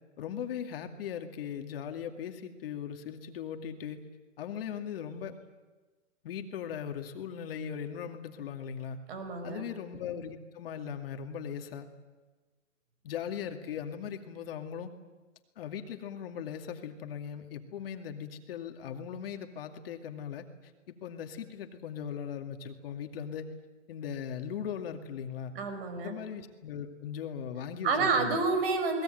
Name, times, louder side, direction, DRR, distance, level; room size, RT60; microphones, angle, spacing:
voice 1, 0.2-4.0 4.4-5.4 6.2-9.0 9.4-11.9 13.0-14.9 15.6-20.5 20.9-23.5 23.9-25.5 26.0-28.4, left 8 dB, 50° left, 5 dB, 2.4 m, -39 dB
voice 2, 9.1-9.6 25.5-26.1 27.8-29.0, right 4 dB, 50° right, 8 dB, 5.8 m, -29 dB
29.0 x 20.0 x 9.2 m, 1.2 s
hypercardioid pair, 160°, 38 cm